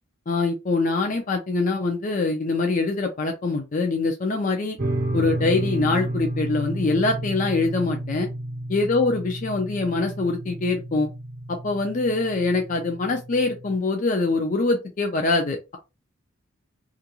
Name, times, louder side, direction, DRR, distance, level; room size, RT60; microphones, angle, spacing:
voice 1, 0.3-4.8 5.1-8.3 8.7-11.1 11.5-15.8, left 3 dB, 40° left, 0.4 m, -24 dB
sound 1, 4.8-13.8, right 1 dB, 45° right, 0.7 m, -31 dB
2.5 x 2.3 x 2.9 m
head